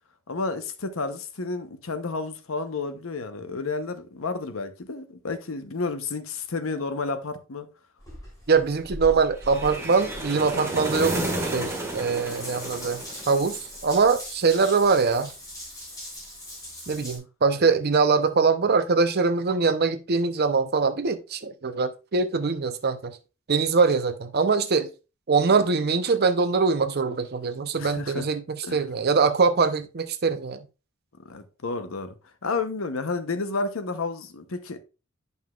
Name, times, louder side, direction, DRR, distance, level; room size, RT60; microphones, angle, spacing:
voice 1, 0.3-7.7 27.8-28.3 28.6-28.9 31.2-32.1 32.4-34.8, left 3 dB, 80° left, 0.8 m, -31 dB
Water tap faucet / Bathtub (filling or washing) / Drip, 8.0-17.2, equal, 15° left, 3.4 m, -41 dB
voice 2, 8.5-13.0 13.3-13.6 13.8-15.3 16.9-23.2 23.5-24.9 25.3-30.6, right 4 dB, 50° right, 0.7 m, -23 dB
sound 1, 9.4-13.7, right 1 dB, 15° right, 1.7 m, -31 dB
9.5 x 5.4 x 2.4 m
head